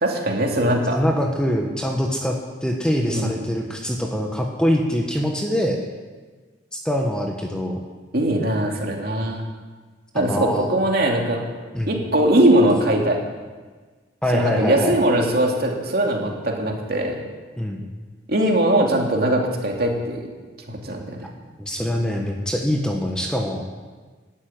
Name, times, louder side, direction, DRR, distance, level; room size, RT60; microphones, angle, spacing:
voice 1, 0.0-1.0 3.1-3.4 8.1-9.4 10.1-11.4 11.9-13.2 14.3-17.1 18.3-20.2 20.7-21.0, right 1 dB, 55° right, 0 dB, 2.6 m, -20 dB
voice 2, 0.9-5.8 6.7-7.8 10.1-10.7 11.7-11.9 14.2-14.9 17.6-17.8 21.6-23.6, equal, 5° left, 1 dB, 1.3 m, -24 dB
13.0 x 9.6 x 9.1 m, 1.4 s
head